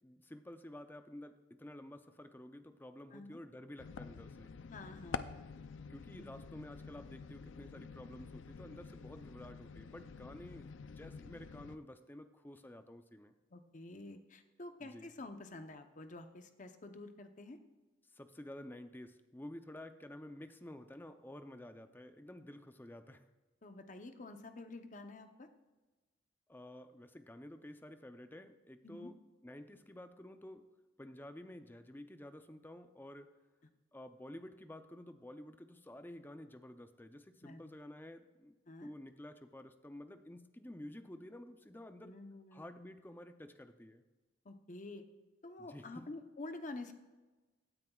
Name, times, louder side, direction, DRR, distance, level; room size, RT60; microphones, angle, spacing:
voice 1, 0.0-4.5 5.9-13.3 14.8-15.1 18.1-23.3 26.5-30.6 31.0-33.3 33.9-38.5 38.8-42.2 42.5-44.0 45.6-46.1, left 1 dB, 10° left, 9 dB, 0.5 m, -51 dB
sound 1, 3.8-11.8, left 5 dB, 85° left, 0.5 m, -48 dB
voice 2, 4.7-5.4 13.5-17.6 23.6-25.5 28.8-29.1 37.4-37.7 38.7-38.9 42.0-42.6 44.4-45.0 45.4-46.9, left 2 dB, 40° left, 7 dB, 0.8 m, -49 dB
17.0 x 9.4 x 2.4 m, 1.2 s
head